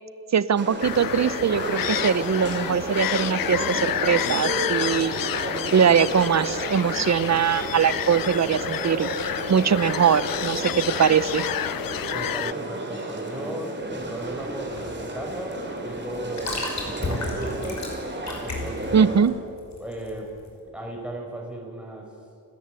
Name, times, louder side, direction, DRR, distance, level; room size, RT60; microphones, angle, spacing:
voice 1, 0.3-5.2 5.7-11.4 18.9-19.3, right 7 dB, 50° right, 17 dB, 0.8 m, -22 dB
sound 1, 0.6-19.2, right 2 dB, 30° right, 4.0 m, -32 dB
sound 2, 0.8-12.5, left 12 dB, 70° left, 0.5 m, -30 dB
voice 2, 12.1-17.9 18.4-19.1 19.8-20.4 20.7-22.2, right 1 dB, 5° right, -1 dB, 4.6 m, -36 dB
sound 3, 13.8-20.5, left 2 dB, 50° left, 5.7 m, -34 dB
29.5 x 13.5 x 9.1 m, 2.5 s
wide cardioid pair, 105°, 35 cm